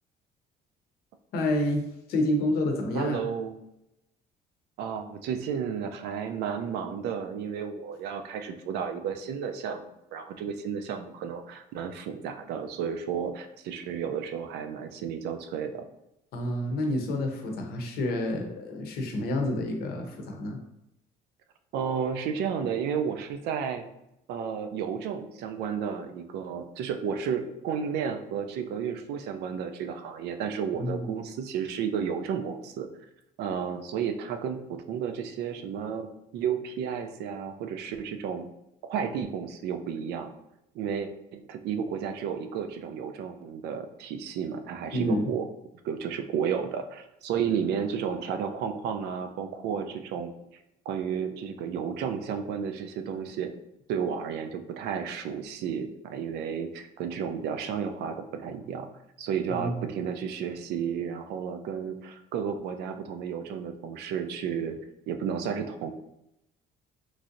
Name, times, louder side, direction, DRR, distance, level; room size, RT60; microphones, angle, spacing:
voice 1, 1.3-3.2 16.3-20.6 30.7-31.1 44.9-45.3 59.5-59.8, left 1 dB, 70° left, 3 dB, 0.7 m, -29 dB
voice 2, 2.9-3.5 4.8-9.8 10.1-15.8 21.7-23.8 24.3-32.9 33.4-36.1 36.3-38.4 38.8-40.3 40.7-45.5 45.8-50.3 50.9-53.5 53.9-58.9 59.2-64.8 65.1-65.9, right 7 dB, 80° right, 7 dB, 0.4 m, -32 dB
3.2 x 2.6 x 2.5 m, 0.86 s
cardioid pair, 110°, 17 cm